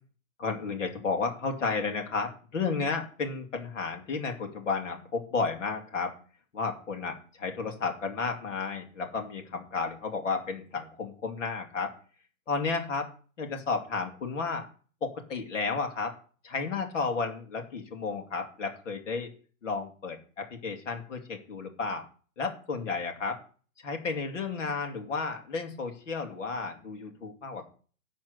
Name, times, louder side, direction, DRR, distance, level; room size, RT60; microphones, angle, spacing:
voice 1, 0.4-6.1 6.5-11.9 12.5-13.1 13.4-14.7 15.0-16.1 16.4-19.3 19.6-22.1 22.4-23.4 23.8-27.6, left 4 dB, 60° left, 4 dB, 2.8 m, -32 dB
12.0 x 4.4 x 8.0 m, 0.41 s
hypercardioid pair, 180°, 41 cm